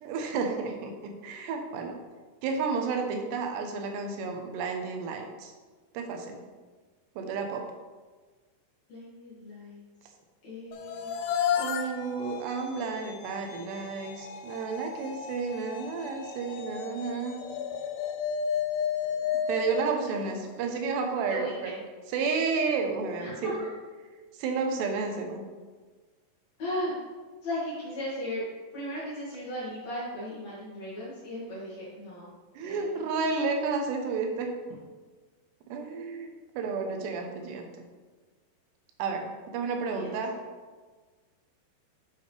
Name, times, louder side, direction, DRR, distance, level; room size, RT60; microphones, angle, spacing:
voice 1, 0.0-2.0 2.4-5.5 5.9-6.4 7.2-7.7 11.6-17.5 19.5-21.7 22.1-23.6 24.3-25.5 32.6-34.5 35.7-37.7 39.0-40.4, right 4 dB, 80° right, 3 dB, 2.9 m, -31 dB
voice 2, 8.9-9.8 10.4-11.1 19.8-20.3 21.3-21.8 23.2-23.3 26.6-26.9 27.4-28.4 28.7-32.3 32.6-32.8 39.9-40.1, equal, 50° left, -7 dB, 2.7 m, -36 dB
TV Sounds, 10.7-20.9, left 8 dB, 85° left, 2.7 m, -33 dB
8.1 x 7.1 x 3.3 m, 1.4 s
omnidirectional pair, 4.9 m